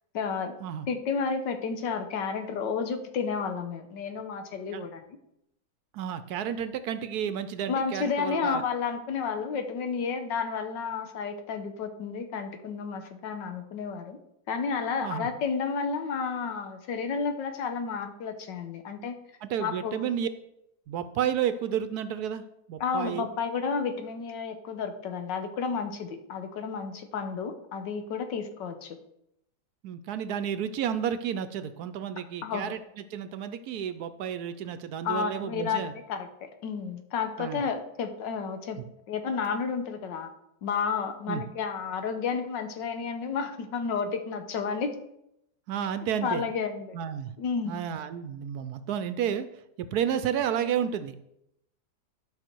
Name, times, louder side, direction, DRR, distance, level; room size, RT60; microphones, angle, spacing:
voice 1, 0.1-0.5 0.9-5.2 7.7-14.2 14.5-19.2 19.6-20.0 22.8-29.0 32.4-32.7 35.0-38.8 39.1-40.3 40.6-45.0 46.2-47.0 47.4-47.8, left 5 dB, 85° left, 7 dB, 1.6 m, -31 dB
voice 2, 5.9-8.6 15.0-15.3 19.4-20.3 20.9-23.3 29.8-32.8 33.1-35.9 37.4-37.6 41.3-41.4 45.7-46.4 46.9-47.3 47.7-49.5 49.8-51.3, right 9 dB, 70° right, 12 dB, 1.0 m, -31 dB
11.5 x 5.5 x 4.5 m, 0.81 s
omnidirectional pair, 1.9 m